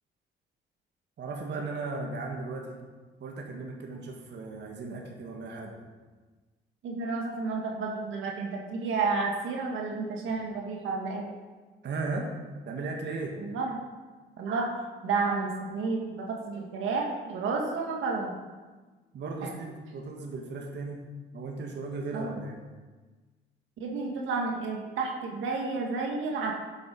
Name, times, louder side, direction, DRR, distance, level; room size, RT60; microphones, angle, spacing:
voice 1, 1.2-2.8 3.2-5.9 11.8-12.3 12.7-13.4 19.1-21.0 21.3-22.6, right 3 dB, 60° right, 0 dB, 1.8 m, -36 dB
voice 2, 6.8-11.3 13.4-13.8 14.4-14.8 15.0-18.3 19.4-19.5 22.1-22.3 23.8-26.5, right 4 dB, 85° right, 0 dB, 1.9 m, -31 dB
11.0 x 7.4 x 5.3 m, 1.3 s
cardioid pair, 90°, 20 cm